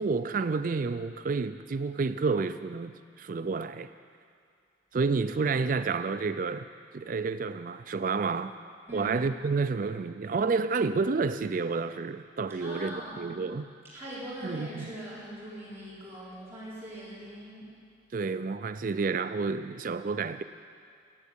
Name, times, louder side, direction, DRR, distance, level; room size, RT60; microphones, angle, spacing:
voice 1, 0.0-3.9 4.9-6.7 6.9-8.6 8.9-13.7 14.4-14.9 18.1-20.4, right 4 dB, 50° right, 11 dB, 0.4 m, -30 dB
voice 2, 12.6-13.3 13.9-17.7, equal, 15° right, -10 dB, 4.0 m, -41 dB
16.0 x 8.2 x 8.1 m, 2.3 s
head